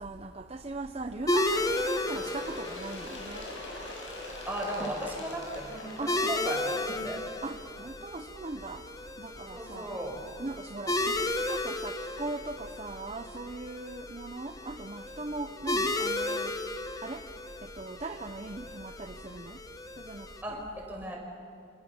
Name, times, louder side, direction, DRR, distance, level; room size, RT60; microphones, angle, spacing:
voice 1, 0.0-3.5 4.8-5.1 6.0-6.5 7.4-8.8 9.2-10.0 10.4-16.5 17.0-17.2 17.7-19.6 20.0-20.7, right 2 dB, 35° right, 7 dB, 0.8 m, -39 dB
sound 1, 1.3-20.4, left 2 dB, 20° left, 1.3 m, -34 dB
Bird, 1.4-6.9 7.8-7.9 8.2-8.3 9.2-9.3 10.2-10.3 11.2-11.3, left 1 dB, 80° left, 7.9 m, -43 dB
voice 2, 4.4-7.2 9.5-10.2 20.4-21.2, right 1 dB, 10° right, -2 dB, 6.3 m, -36 dB
29.5 x 27.5 x 7.2 m, 2.3 s
head